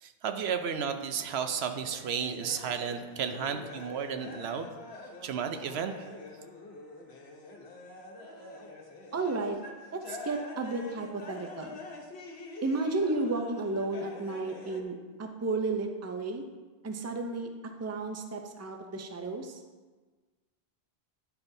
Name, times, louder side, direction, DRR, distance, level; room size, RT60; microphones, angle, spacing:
voice 1, 0.0-4.8 5.2-5.9, right 7 dB, 85° right, 8 dB, 0.9 m, -33 dB
sound 1, 1.8-14.8, left 2 dB, 85° left, 1.2 m, -46 dB
voice 2, 8.2-8.6 9.1-9.6 9.9-11.8 12.6-16.4 16.8-17.5 17.8-19.6, right 3 dB, 20° right, 4 dB, 0.4 m, -33 dB
10.0 x 5.7 x 2.7 m, 1.3 s
omnidirectional pair, 1.0 m